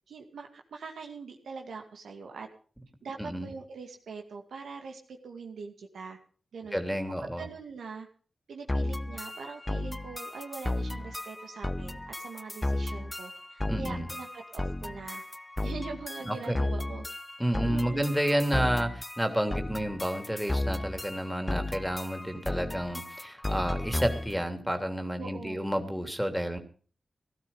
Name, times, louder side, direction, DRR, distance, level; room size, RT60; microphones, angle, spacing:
voice 1, 0.1-2.5 3.0-6.2 6.5-6.8 7.4-8.1 8.5-15.2 15.6-17.0 17.7-18.2 25.2-25.7, right 4 dB, 85° right, 3 dB, 2.2 m, -42 dB
voice 2, 3.2-3.5 6.7-7.5 13.7-14.1 16.3-16.6 17.4-26.6, equal, ahead, 5 dB, 3.1 m, -30 dB
sound 1, 8.7-24.4, left 1 dB, 20° left, 0.9 m, -34 dB
17.0 x 12.0 x 5.5 m, 0.42 s
cardioid pair, 40°, 0 cm